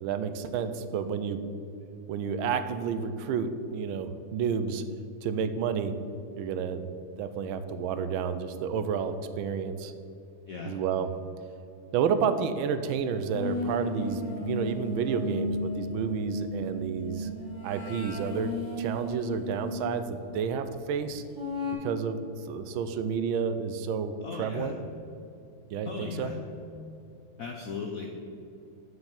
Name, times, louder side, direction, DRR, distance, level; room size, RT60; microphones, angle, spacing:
voice 1, 0.0-1.4 2.1-4.8 5.2-5.9 6.4-6.9 7.2-9.9 10.7-11.1 11.9-17.3 17.6-21.2 21.8-24.7 25.7-26.3, right 6 dB, 80° right, 10 dB, 1.4 m, -30 dB
voice 2, 10.5-10.8 24.2-24.7 25.8-26.4 27.4-28.1, left 4 dB, 65° left, 2 dB, 0.9 m, -37 dB
sound 1, 13.3-19.9 21.3-21.7, left 1 dB, 35° left, 2.6 m, -34 dB
7.9 x 6.0 x 6.9 m, 2.7 s
omnidirectional pair, 2.3 m